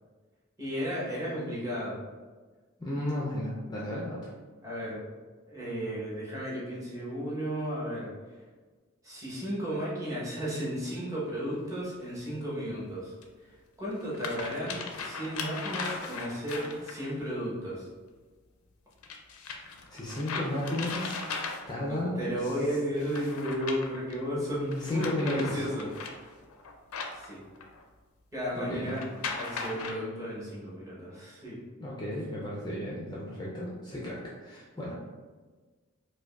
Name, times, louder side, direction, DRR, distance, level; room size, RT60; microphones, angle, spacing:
voice 1, 0.6-2.0 4.6-5.0 5.5-8.1 9.0-13.1 13.8-17.8 21.9-25.9 27.1-27.4 28.3-29.0 29.3-31.6, equal, 15° right, -7 dB, 1.0 m, -34 dB
voice 2, 2.8-4.3 19.9-21.2 21.7-22.5 24.8-25.6 28.5-29.0 31.8-35.0, left 1 dB, 20° left, -5 dB, 0.4 m, -33 dB
sound 1, 11.5-11.6 13.2-13.3 13.9-17.1 19.0-21.9 23.0-24.2 24.7-27.8 28.8-29.9, left 4 dB, 85° left, 0.5 m, -38 dB
4.7 x 2.2 x 2.4 m, 1.4 s
head